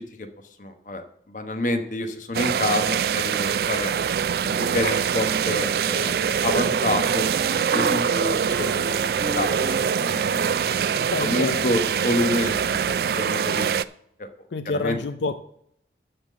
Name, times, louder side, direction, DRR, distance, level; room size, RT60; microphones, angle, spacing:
voice 1, 0.6-3.9 4.4-6.2 6.4-8.9 9.3-9.5 9.8-10.8 11.2-13.7 14.2-14.3 14.7-15.0, left 1 dB, 45° left, 6 dB, 1.1 m, -28 dB
sound 1, 2.3-13.8, right 7 dB, 60° right, 0.3 m, -24 dB
Wind instrument woodwind instrument, 6.1-11.7, right 1 dB, 20° right, 1.2 m, -38 dB
voice 2, 11.0-11.6 14.5-15.4, left 3 dB, 85° left, 10 dB, 0.5 m, -28 dB
12.0 x 4.0 x 7.5 m, 0.72 s
head